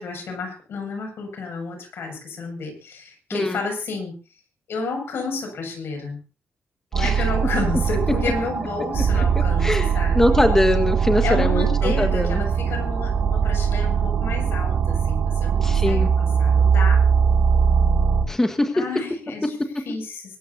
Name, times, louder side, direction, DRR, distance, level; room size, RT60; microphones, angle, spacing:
voice 1, 0.0-4.1 4.7-6.2 6.9-10.4 11.2-17.1 18.7-20.4, left 4 dB, 80° left, 4 dB, 6.9 m, -31 dB
voice 2, 3.3-3.6 6.9-7.2 9.1-9.2 9.6-12.4 15.6-16.1 18.3-18.7, left 1 dB, 10° left, 5 dB, 1.6 m, -22 dB
sound 1, 6.9-18.2, right 6 dB, 65° right, 2.4 m, -20 dB
24.0 x 13.0 x 2.8 m, 0.35 s
wide cardioid pair, 145°, 4 cm